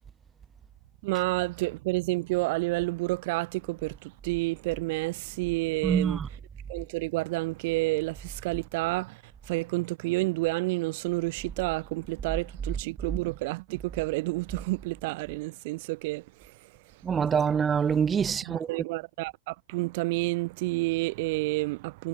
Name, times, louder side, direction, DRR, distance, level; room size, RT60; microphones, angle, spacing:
voice 1, 1.0-6.2 6.7-17.0 18.3-22.1, right 23 dB, 50° right, 4.2 m, -30 dB
voice 2, 5.8-6.2 17.0-18.7, right 7 dB, 20° right, 1.4 m, -25 dB
hypercardioid pair, 105°, 0 cm